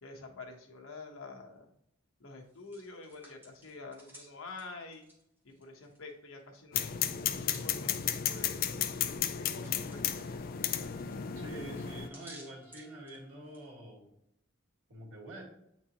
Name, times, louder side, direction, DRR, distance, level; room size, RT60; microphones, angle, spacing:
voice 1, 0.0-1.7 2.2-5.1 5.4-8.7 9.4-10.0, left 3 dB, 70° left, 1 dB, 1.1 m, -48 dB
Hands, 2.4-6.1 6.4-13.7, equal, 10° right, 1.7 m, -58 dB
sound 1, 6.7-12.1, left 9 dB, 45° left, 0.4 m, -34 dB
Bowed string instrument, 10.3-13.7, right 1 dB, 15° left, 1.0 m, -57 dB
voice 2, 11.4-14.1 14.9-15.4, right 1 dB, 80° right, -4 dB, 2.4 m, -46 dB
8.5 x 4.4 x 3.0 m, 0.77 s
head